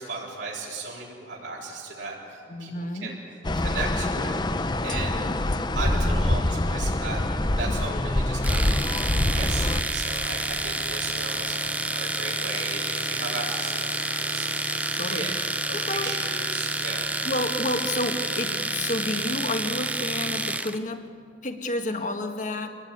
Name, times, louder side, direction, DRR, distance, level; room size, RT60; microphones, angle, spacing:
voice 1, 0.0-2.7 3.0-3.2 3.5-5.2 5.7-7.2 7.5-9.0 9.2-14.7 15.1-15.3 15.9-17.2, right 3 dB, 80° right, -4 dB, 5.5 m, -36 dB
voice 2, 2.5-3.2 7.9-8.0 14.9-16.3 17.2-21.1 21.4-22.7, left 1 dB, 40° left, 6 dB, 1.7 m, -30 dB
sound 1, 3.4-9.8, left 1 dB, 25° left, 0.8 m, -25 dB
Domestic sounds home sounds, 8.4-20.8, right 2 dB, 10° right, 0.7 m, -29 dB
sound 2, 10.0-19.4, left 5 dB, 65° left, 3.6 m, -43 dB
25.5 x 20.0 x 9.5 m, 2.3 s
head